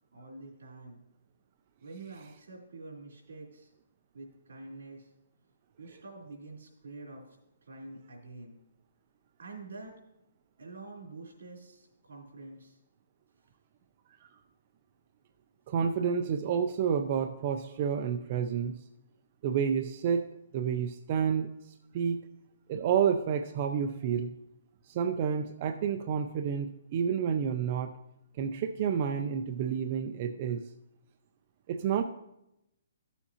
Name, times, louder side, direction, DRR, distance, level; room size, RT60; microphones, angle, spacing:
voice 1, 0.1-1.0 1.8-3.7 4.1-5.1 5.8-7.3 7.6-8.6 9.4-9.9 10.6-12.8, right 3 dB, 80° right, -1 dB, 3.2 m, -47 dB
voice 2, 15.7-18.8 19.4-20.3 20.5-21.5 21.9-22.2 22.7-24.3 24.9-28.0 28.4-30.6 31.7-32.0, right 7 dB, 30° right, 7 dB, 0.4 m, -29 dB
14.0 x 7.1 x 2.8 m, 0.85 s
hypercardioid pair, 175°, 0 cm